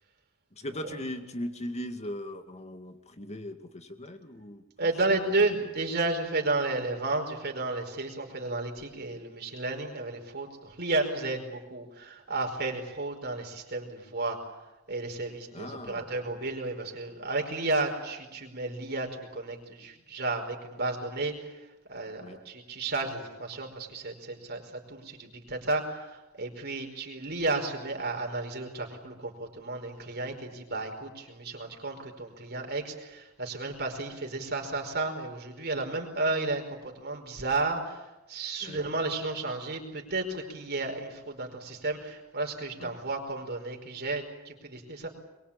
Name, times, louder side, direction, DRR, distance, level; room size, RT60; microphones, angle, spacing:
voice 1, 0.5-4.6 5.1-5.2 5.6-5.7 15.5-16.1 22.2-22.4 38.6-38.8 42.8-42.9, left 1 dB, 30° left, 7 dB, 2.2 m, -39 dB
voice 2, 4.8-14.4 14.9-21.5 21.9-38.0 38.3-45.1, right 2 dB, 50° right, 3 dB, 5.0 m, -32 dB
23.5 x 23.0 x 8.8 m, 1.0 s
head